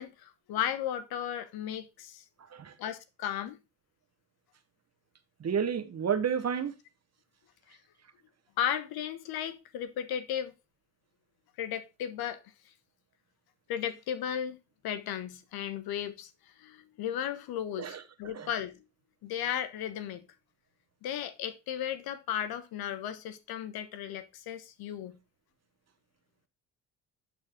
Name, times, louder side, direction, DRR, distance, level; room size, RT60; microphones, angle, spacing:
voice 1, 0.0-2.2 2.8-3.6 8.6-10.5 11.6-12.4 13.7-14.6 14.8-16.3 16.6-18.8 19.2-20.2 21.0-25.2, left 10 dB, 75° left, 1.1 m, -35 dB
voice 2, 5.4-6.7 17.8-18.0 18.3-18.5, right 7 dB, 45° right, 1.2 m, -30 dB
11.0 x 4.1 x 3.6 m
supercardioid pair, 60°, 37 cm